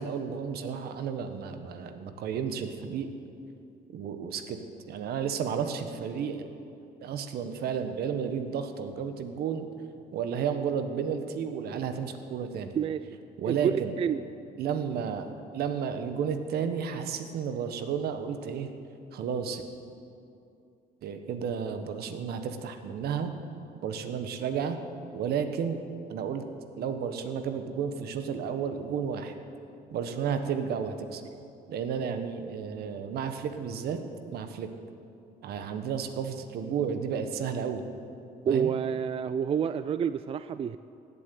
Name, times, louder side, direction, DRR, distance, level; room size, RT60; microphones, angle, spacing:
voice 1, 0.0-3.1 3.9-4.6 4.9-6.5 7.0-9.7 10.1-12.7 13.4-14.0 14.6-18.7 19.1-19.6 21.0-23.3 23.8-24.8 25.1-25.8 26.1-26.4 26.8-29.4 29.9-31.2 31.7-34.0 34.3-34.7 35.4-37.8 38.4-38.7, right 7 dB, 70° right, 8 dB, 1.3 m, -32 dB
voice 2, 13.5-14.2 38.5-40.8, right 8 dB, 35° right, 12 dB, 0.4 m, -28 dB
16.5 x 8.4 x 9.2 m, 2.7 s
cardioid pair, 110°, 17 cm